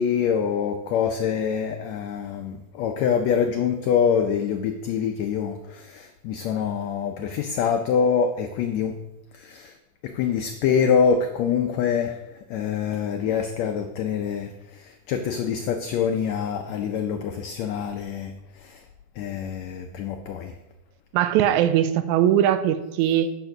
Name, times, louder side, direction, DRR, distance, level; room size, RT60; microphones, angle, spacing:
voice 1, 0.0-9.0 9.3-9.7 10.0-12.2 12.5-18.3 18.6-18.8 19.2-20.5, left 7 dB, 85° left, 5 dB, 1.5 m, -25 dB
voice 2, 21.1-23.3, right 11 dB, 80° right, 10 dB, 1.8 m, -20 dB
10.5 x 4.4 x 5.9 m, 0.97 s
omnidirectional pair, 3.8 m